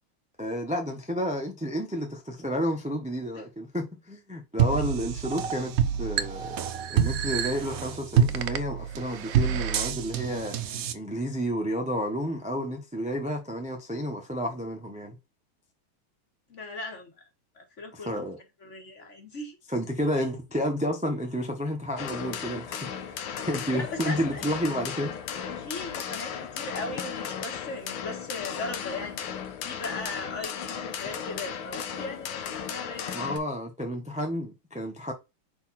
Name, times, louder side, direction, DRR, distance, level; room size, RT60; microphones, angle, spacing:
voice 1, 0.4-5.7 6.0-6.6 6.9-10.6 10.9-15.2 17.9-18.4 19.7-25.1 33.1-35.1, equal, 10° right, 0.4 m, -31 dB
sound 1, 4.6-10.9, right 8 dB, 75° right, 0.8 m, -27 dB
voice 2, 16.5-17.1 17.5-19.6 23.7-24.6 25.5-29.2 29.6-33.4, left 2 dB, 40° left, 1.7 m, -38 dB
sound 2, 22.0-33.4, left 8 dB, 85° left, 1.8 m, -35 dB
5.4 x 4.2 x 4.1 m
omnidirectional pair, 2.3 m